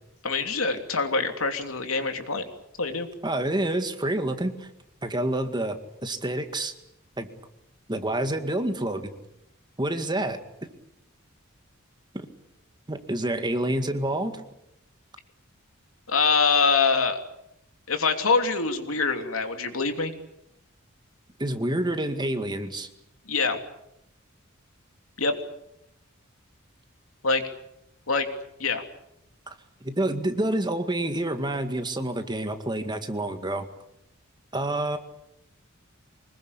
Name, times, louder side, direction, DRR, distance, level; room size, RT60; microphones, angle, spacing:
voice 1, 0.2-2.4 2.8-3.1 16.1-17.2 17.9-20.1 23.3-23.6 25.2-25.3 27.2-27.4 28.1-28.3 28.6-28.8, left 4 dB, 85° left, 6 dB, 3.1 m, -24 dB
voice 2, 3.2-4.7 5.0-5.8 6.0-6.7 7.2-7.3 7.9-9.1 9.8-10.4 12.1-12.3 12.9-14.4 21.4-22.9 29.5-29.6 29.8-33.7 34.5-35.0, right 1 dB, 20° right, 7 dB, 2.0 m, -28 dB
25.0 x 20.5 x 8.5 m, 0.81 s
head